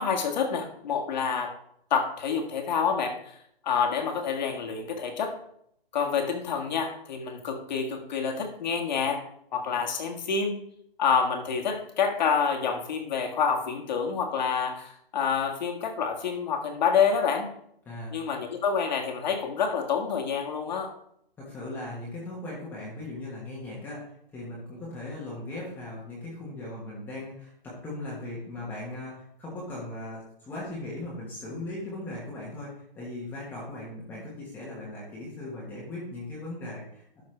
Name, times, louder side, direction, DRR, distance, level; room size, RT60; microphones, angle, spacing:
voice 1, 0.0-1.5 1.9-3.4 3.6-5.4 5.9-9.2 9.5-10.6 11.0-17.5 18.1-20.9, left 6 dB, 45° left, 3 dB, 1.7 m, -27 dB
voice 2, 17.8-18.2 21.4-37.2, left 2 dB, 5° left, -6 dB, 1.3 m, -38 dB
12.0 x 5.6 x 3.3 m, 0.71 s
hypercardioid pair, 160°, 30 cm